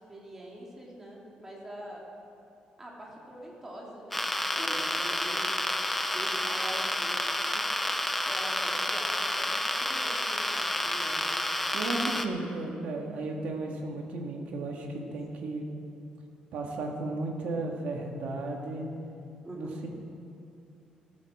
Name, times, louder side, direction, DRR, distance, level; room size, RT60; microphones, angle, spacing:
voice 1, 0.0-2.0 2.8-5.5 6.1-7.7 8.3-11.3 19.4-19.8, right 1 dB, 15° right, -3 dB, 2.5 m, -44 dB
sound 1, 4.1-12.3, left 1 dB, 5° left, 0.6 m, -30 dB
voice 2, 11.7-15.7 16.5-18.9 19.5-19.9, right 2 dB, 65° right, 1 dB, 2.0 m, -34 dB
15.0 x 13.5 x 4.9 m, 2.6 s
cardioid pair, 175°, 2 cm